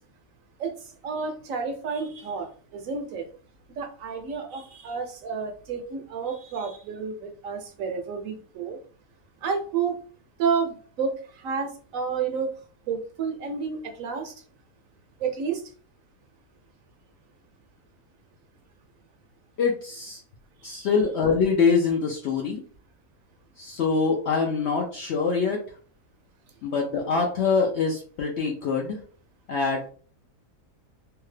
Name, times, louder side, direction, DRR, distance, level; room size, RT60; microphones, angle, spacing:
voice 1, 0.6-3.3 3.8-8.8 9.4-10.0 10.4-12.5 12.9-14.3 15.2-15.6 20.6-20.9, right 5 dB, 70° right, 4 dB, 0.9 m, -30 dB
voice 2, 19.6-20.2 20.6-22.6 23.6-25.6 26.6-29.0 29.5-29.9, left 5 dB, 65° left, 0 dB, 0.7 m, -24 dB
2.8 x 2.3 x 3.2 m, 0.42 s
omnidirectional pair, 1.6 m